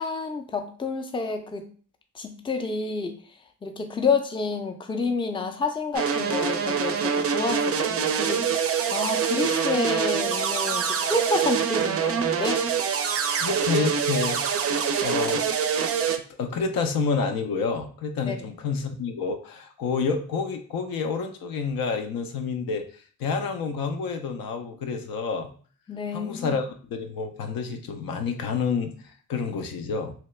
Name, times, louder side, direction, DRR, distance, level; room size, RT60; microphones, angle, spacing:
voice 1, 0.0-1.7 2.1-3.1 3.6-8.4 8.9-12.7 18.3-18.4 25.9-26.6, left 4 dB, 15° left, 6 dB, 0.4 m, -29 dB
sound 1, 5.9-16.2, right 7 dB, 40° right, 0.4 m, -25 dB
voice 2, 13.4-14.4 15.0-15.4 16.4-22.8 23.2-25.5 26.1-30.1, left 5 dB, 70° left, 6 dB, 0.6 m, -28 dB
2.9 x 2.2 x 3.1 m, 0.43 s
supercardioid pair, 60°, 35 cm